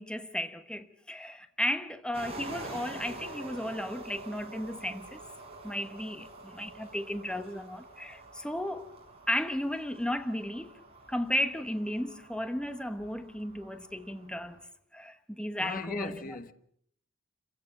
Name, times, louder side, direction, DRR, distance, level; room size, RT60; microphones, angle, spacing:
voice 1, 0.0-5.2 5.6-8.9 9.3-10.8 11.1-14.6 14.9-16.4, left 1 dB, 5° left, 1.1 m, -34 dB
sound 1, 2.1-14.6, right 2 dB, 30° right, 6.9 m, -47 dB
voice 2, 15.5-16.5, left 3 dB, 45° left, 1.2 m, -38 dB
29.0 x 16.0 x 7.7 m
head